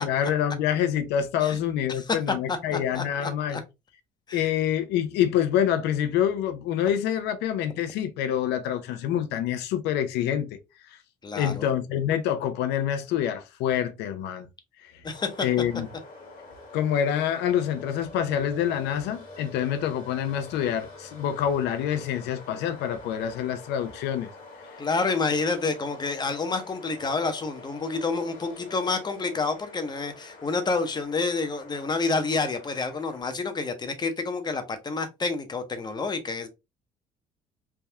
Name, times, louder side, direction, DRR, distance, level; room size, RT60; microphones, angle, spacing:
voice 1, 0.0-3.6 4.3-10.6 10.8-11.0 11.3-14.5 14.8-15.0 15.4-15.9 16.7-24.3 24.6-24.8, left 9 dB, 85° left, 0.5 m, -26 dB
voice 2, 2.5-3.0 3.5-3.6 4.3-4.5 11.2-11.7 15.0-15.5 24.8-36.5, left 4 dB, 25° left, 0.7 m, -28 dB
sound 1, 15.1-33.2, left 3 dB, 50° left, 1.3 m, -46 dB
3.4 x 2.3 x 2.7 m
cardioid pair, 110°, 17 cm